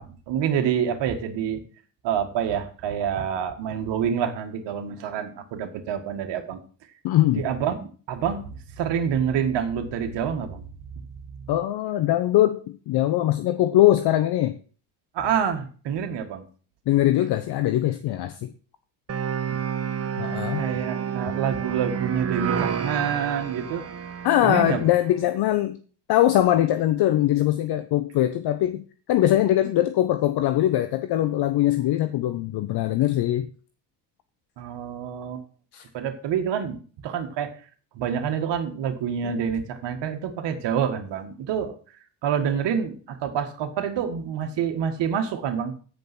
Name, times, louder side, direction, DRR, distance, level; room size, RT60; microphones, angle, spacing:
voice 1, 0.0-1.6 2.0-6.6 7.4-8.5 8.7-10.7 11.3-11.5 15.1-16.4 20.6-23.8 24.4-24.9 34.6-35.4 35.9-37.5 38.0-41.7 42.2-45.7, right 8 dB, 60° right, 5 dB, 1.8 m, -27 dB
voice 2, 7.0-7.5 11.5-14.6 16.9-18.5 20.2-20.6 24.2-25.8 26.1-28.8 29.1-33.5 35.7-35.8, left 13 dB, 55° left, 10 dB, 0.8 m, -22 dB
sound 1, 19.1-25.0, right 7 dB, 30° right, 1.0 m, -29 dB
9.2 x 5.3 x 6.1 m, 0.40 s
hypercardioid pair, 60°, 47 cm